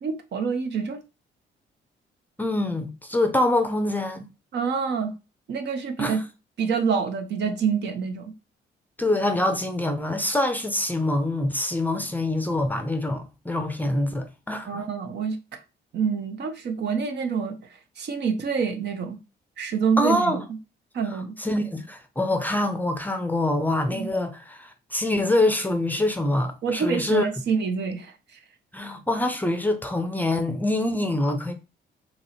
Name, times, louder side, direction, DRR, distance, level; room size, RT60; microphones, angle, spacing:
voice 1, 0.0-1.0 4.5-5.1 5.5-6.2 6.6-8.3 14.7-15.6 15.9-17.6 18.0-19.2 19.6-20.4 20.9-21.3 23.9-24.1 26.6-28.1, right 6 dB, 60° right, 0.7 m, -26 dB
voice 2, 2.4-4.3 6.0-6.2 9.0-14.8 20.0-20.4 21.4-27.3 28.7-31.5, left 1 dB, 10° left, 0.5 m, -25 dB
2.9 x 2.6 x 4.2 m
cardioid pair, 90°, 20 cm